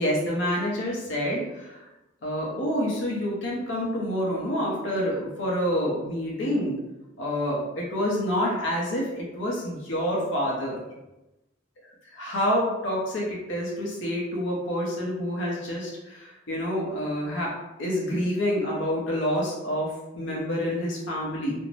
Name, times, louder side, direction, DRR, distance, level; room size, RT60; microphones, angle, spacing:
voice 1, 0.0-1.9 2.2-6.7 7.2-10.8 12.2-17.5 17.8-21.5, equal, 65° left, -4 dB, 0.7 m, -27 dB
2.5 x 2.0 x 3.1 m, 0.98 s
head